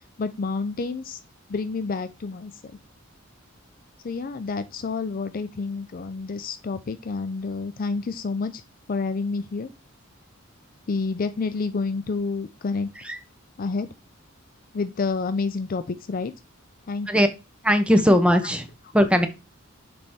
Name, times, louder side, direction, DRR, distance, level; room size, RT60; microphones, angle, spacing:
voice 1, 0.2-1.2 1.5-2.5 4.0-8.6 8.9-9.7 10.9-12.9 13.6-13.9 14.7-16.3 16.9-17.1, left 4 dB, 45° left, 0.4 m, -29 dB
voice 2, 17.6-18.7 18.9-19.3, equal, 5° right, 0.7 m, -19 dB
6.5 x 4.3 x 3.5 m
head